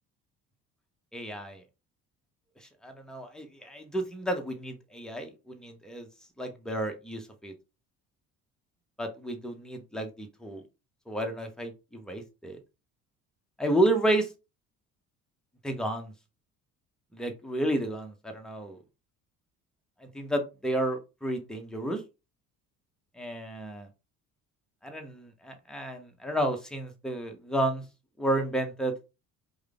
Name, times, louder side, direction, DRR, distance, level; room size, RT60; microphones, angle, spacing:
voice 1, 1.1-1.6 2.6-6.1 6.4-7.5 9.0-10.6 11.1-12.6 13.6-14.3 15.6-16.1 17.1-18.8 20.0-22.0 23.1-23.9 24.8-27.8 28.2-28.9, right 1 dB, ahead, 4 dB, 0.9 m, -31 dB
4.8 x 2.3 x 3.6 m, 0.28 s
figure-of-eight pair, 50°, 45 cm